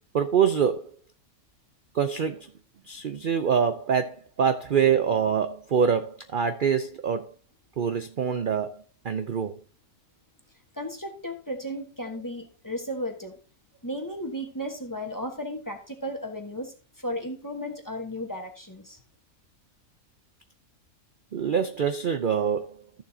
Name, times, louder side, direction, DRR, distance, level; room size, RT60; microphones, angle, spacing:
voice 1, 0.1-0.9 1.9-2.5 2.9-7.3 7.8-9.6 21.3-23.0, right 7 dB, 50° right, 0.6 m, -25 dB
voice 2, 10.7-13.3 13.8-19.0, equal, 15° left, 1.1 m, -34 dB
14.0 x 7.1 x 2.8 m
omnidirectional pair, 1.5 m